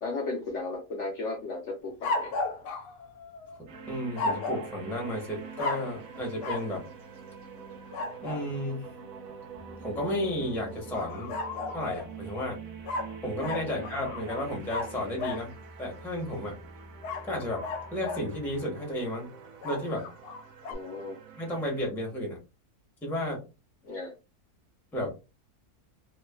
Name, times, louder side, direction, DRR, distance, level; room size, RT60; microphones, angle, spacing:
voice 1, 0.0-2.3 13.6-13.8 20.7-21.2 23.8-24.1, left 3 dB, 65° left, 0 dB, 0.8 m, -35 dB
sound 1, 2.0-3.6 4.2-4.7 5.6-6.0 6.4-6.7 7.9-8.5 10.9-12.1 12.8-15.5 17.0-18.3 19.6-20.8, left 3 dB, 80° left, 1.1 m, -34 dB
voice 2, 3.6-6.8 8.2-8.9 9.8-11.3 11.7-12.6 13.2-15.5 15.8-16.5 17.2-17.6 17.9-19.3 19.6-20.1 21.4-22.4 23.0-23.4 24.9-25.1, left 1 dB, ahead, -1 dB, 0.6 m, -33 dB
sound 2, 3.7-21.9, right 5 dB, 70° right, 1.0 m, -45 dB
3.0 x 2.2 x 2.2 m, 0.29 s
omnidirectional pair, 1.7 m